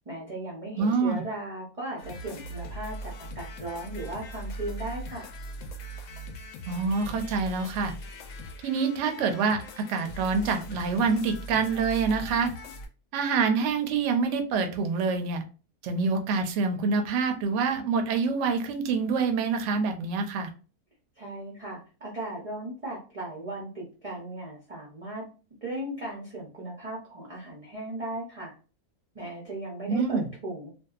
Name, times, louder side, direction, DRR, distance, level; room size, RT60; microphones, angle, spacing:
voice 1, 0.1-5.3 21.2-25.3 25.6-28.5 29.1-30.7, right 1 dB, 45° right, -4 dB, 0.4 m, -37 dB
voice 2, 0.8-1.2 6.7-7.9 8.6-12.5 13.1-15.4 15.8-20.5 29.9-30.3, right 5 dB, 65° right, 6 dB, 0.8 m, -26 dB
sound 1, 2.0-12.9, equal, 80° left, 1.0 m, -40 dB
2.6 x 2.3 x 2.3 m, 0.35 s
omnidirectional pair, 1.5 m